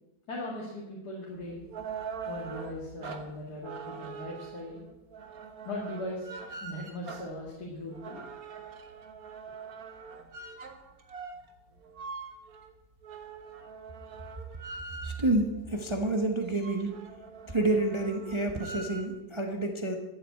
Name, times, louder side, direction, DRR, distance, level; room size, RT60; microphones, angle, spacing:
voice 1, 0.3-1.6 2.3-4.8 5.7-6.3 6.6-8.2, left 1 dB, 55° left, -3 dB, 2.5 m, -39 dB
sound 1, 1.4-15.4 15.9-16.0 16.3-19.2, right 5 dB, 50° right, 1.6 m, -43 dB
voice 2, 15.0-16.9 17.5-20.0, right 2 dB, 20° right, 4 dB, 0.8 m, -29 dB
12.5 x 7.5 x 8.3 m, 1.0 s
omnidirectional pair, 2.1 m